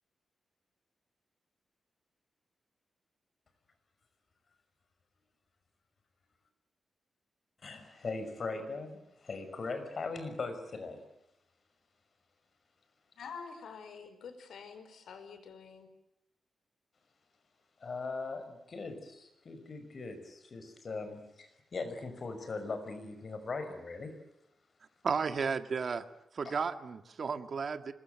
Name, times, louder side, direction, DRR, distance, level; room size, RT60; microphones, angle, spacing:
voice 1, 7.6-11.0 17.8-24.1 26.4-26.6, left 3 dB, 45° left, 8 dB, 5.7 m, -40 dB
voice 2, 13.1-15.9, left 6 dB, 85° left, 9 dB, 5.1 m, -47 dB
voice 3, 25.0-26.0 26.3-27.9, right 5 dB, 50° right, 10 dB, 1.9 m, -33 dB
26.0 x 21.5 x 9.2 m, 0.86 s
wide cardioid pair, 140°, 0 cm